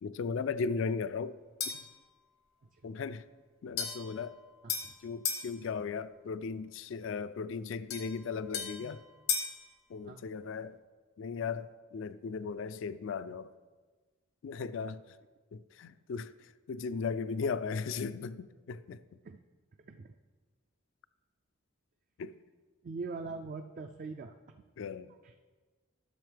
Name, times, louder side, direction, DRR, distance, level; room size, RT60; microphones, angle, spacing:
voice 1, 0.0-1.4 2.8-3.2 3.6-4.4 5.0-9.0 9.9-10.8 11.2-13.5 14.4-15.2 15.5-19.0 22.2-22.4 24.8-25.1, left 5 dB, 60° left, 15 dB, 0.3 m, -37 dB
sound 1, 1.6-2.0 3.8-5.5 7.9-9.6, left 6 dB, 85° left, 1.2 m, -36 dB
voice 2, 4.6-4.9 10.0-10.2 19.2-19.4 19.9-20.1 22.8-24.6 25.2-25.3, right 4 dB, 40° right, 5 dB, 0.3 m, -42 dB
12.5 x 6.4 x 3.4 m, 1.4 s
head